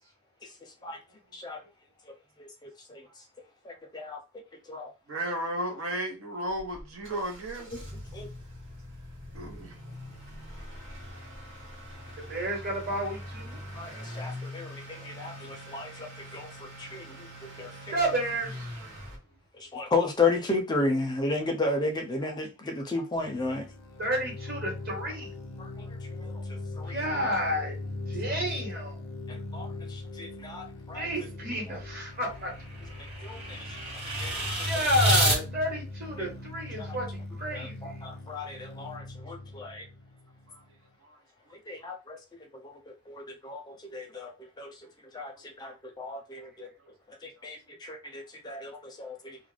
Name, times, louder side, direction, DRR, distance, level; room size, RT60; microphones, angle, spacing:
voice 1, 3.7-4.2 4.7-4.9 8.2-8.3 13.8-17.3 17.6-17.7 19.7-23.7 25.6-25.7 26.1-26.3 26.8-27.0 29.3-31.1 33.2-33.6 34.2-34.6 36.2-36.3 36.8-37.0 37.5-39.8 41.7-42.2 42.6-42.8 43.1-44.3 44.6-44.7 45.1-46.7 47.2-49.4, left 3 dB, 20° left, 0.4 m, -33 dB
voice 2, 5.1-7.7 9.3-9.7 41.0-41.2, right 1 dB, 90° right, 0.7 m, -34 dB
Motor vehicle (road) / Accelerating revving vroom, 6.5-19.2, left 1 dB, 70° right, 1.2 m, -43 dB
voice 3, 12.3-13.6 17.9-18.7 24.0-25.3 26.9-27.7 28.1-29.0 30.9-32.5 34.6-38.0, equal, 45° right, 1.2 m, -31 dB
sound 1, 23.2-40.8, left 2 dB, 90° left, 0.5 m, -41 dB
sound 2, 31.8-35.4, right 1 dB, 30° right, 1.0 m, -29 dB
2.4 x 2.0 x 3.2 m
head